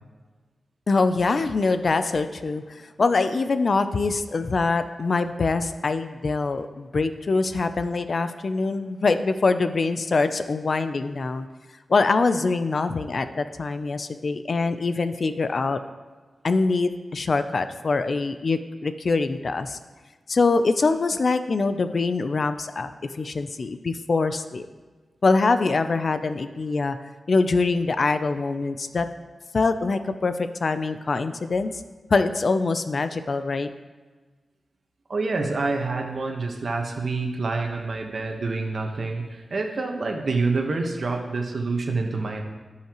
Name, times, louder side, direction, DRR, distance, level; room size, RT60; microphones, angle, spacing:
voice 1, 0.9-11.5 11.9-15.8 16.4-19.8 20.3-24.7 25.2-27.0 27.3-29.1 29.5-31.7 32.1-33.7, left 3 dB, 55° left, 10 dB, 0.5 m, -24 dB
voice 2, 35.1-42.4, right 3 dB, 55° right, 3 dB, 1.2 m, -27 dB
16.5 x 5.7 x 3.0 m, 1.3 s
wide cardioid pair, 105°, 0 cm